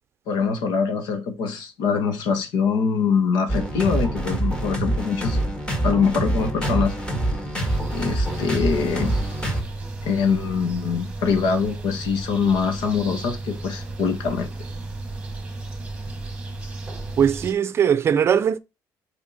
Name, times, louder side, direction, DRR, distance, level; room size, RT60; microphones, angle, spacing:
voice 1, 0.3-5.4 5.8-7.0 7.9-9.1 10.0-14.5, left 5 dB, 85° left, 1.8 m, -23 dB
sound 1, 3.5-9.6, right 1 dB, 15° left, 1.8 m, -25 dB
sound 2, 7.6-17.5, right 2 dB, 15° right, 1.3 m, -34 dB
voice 2, 17.2-18.6, right 8 dB, 35° right, 0.5 m, -20 dB
6.1 x 4.4 x 4.3 m
cardioid pair, 160°, 7 cm